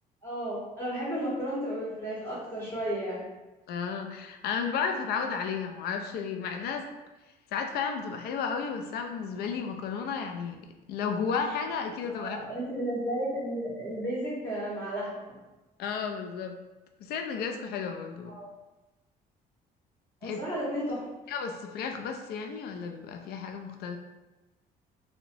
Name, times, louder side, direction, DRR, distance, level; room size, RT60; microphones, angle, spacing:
voice 1, 0.2-3.3 12.1-15.2 18.3-18.5 20.2-21.0, equal, 15° left, -9 dB, 1.5 m, -33 dB
voice 2, 3.7-6.9 7.5-12.4 15.8-16.6 17.0-18.4 20.2-20.4 21.3-24.0, left 6 dB, 70° left, 5 dB, 0.4 m, -33 dB
2.9 x 2.1 x 2.6 m, 1.1 s
cardioid pair, 110°, 17 cm